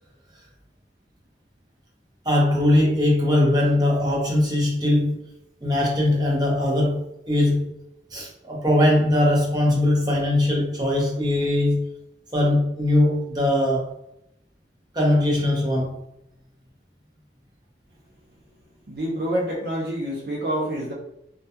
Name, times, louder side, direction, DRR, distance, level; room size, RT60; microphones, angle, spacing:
voice 1, 2.2-5.2 5.6-7.0 7.3-7.7 8.1-11.8 12.3-13.9 14.9-16.0, left 1 dB, 25° right, -4 dB, 0.7 m, -20 dB
voice 2, 18.9-20.9, right 1 dB, 60° right, -3 dB, 0.5 m, -27 dB
2.3 x 2.2 x 2.8 m, 0.82 s
head